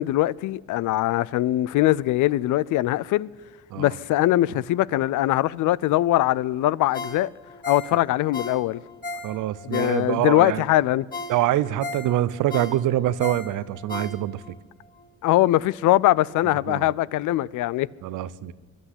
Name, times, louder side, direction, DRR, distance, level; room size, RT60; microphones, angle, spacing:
voice 1, 0.0-3.3 3.8-7.3 7.7-8.8 9.6-11.1 15.2-17.9, left 15 dB, 80° left, 0.5 m, -22 dB
Ringtone, 6.9-10.4 10.8-10.9 11.1-14.6 15.0-15.1, left 2 dB, 30° left, 4.3 m, -36 dB
voice 2, 9.2-10.6 11.3-14.4 16.7-16.9 18.0-18.5, right 13 dB, 85° right, 0.7 m, -25 dB
22.5 x 12.0 x 9.9 m
cardioid pair, 90°, 30 cm